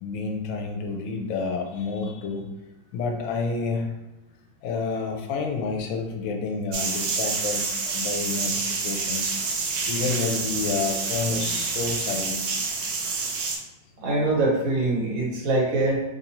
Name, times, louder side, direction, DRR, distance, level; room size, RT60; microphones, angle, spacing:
voice 1, 0.0-2.5 2.9-3.9 4.6-9.4 9.8-12.5, left 4 dB, 80° left, 3 dB, 1.3 m, -29 dB
sound 1, 6.7-13.6, right 4 dB, 70° right, 1.0 m, -28 dB
voice 2, 14.0-16.0, right 2 dB, 90° right, -2 dB, 1.7 m, -23 dB
3.6 x 2.7 x 2.9 m, 1.0 s
omnidirectional pair, 2.1 m